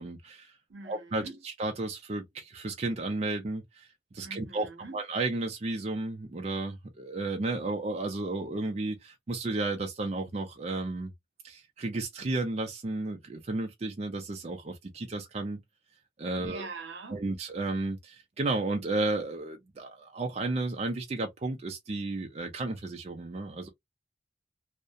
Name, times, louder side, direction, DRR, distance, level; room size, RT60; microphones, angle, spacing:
voice 1, 0.0-0.5 0.9-3.9 4.1-4.7 4.9-11.1 11.4-15.6 16.2-16.6 17.1-23.7, right 2 dB, 35° right, 0.4 m, -33 dB
voice 2, 0.7-1.4 4.2-5.0 16.4-17.2, right 3 dB, 75° right, 0.7 m, -43 dB
2.6 x 2.1 x 2.2 m
head